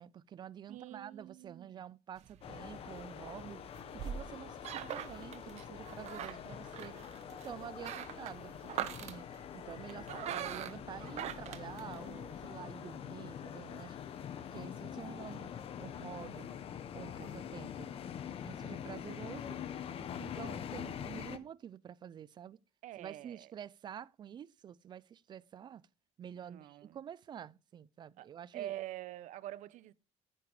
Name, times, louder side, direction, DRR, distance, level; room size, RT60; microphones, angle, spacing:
voice 1, 0.0-3.6 4.0-7.0 7.3-14.0 14.5-15.5 15.8-16.5 16.9-17.9 18.4-19.6 20.2-22.6 23.0-25.8 26.2-28.7, right 9 dB, 35° right, 0.6 m, -48 dB
voice 2, 0.7-1.8 22.8-23.5 26.4-27.0 28.2-28.3 28.5-29.9, right 13 dB, 80° right, 1.0 m, -45 dB
sound 1, 2.2-12.5, right 10 dB, 60° right, 1.5 m, -44 dB
sound 2, 2.4-21.4, left 9 dB, 50° left, 1.5 m, -45 dB
sound 3, 12.6-18.8, left 7 dB, 75° left, 3.0 m, -60 dB
14.5 x 10.0 x 4.9 m
cardioid pair, 180°, 13 cm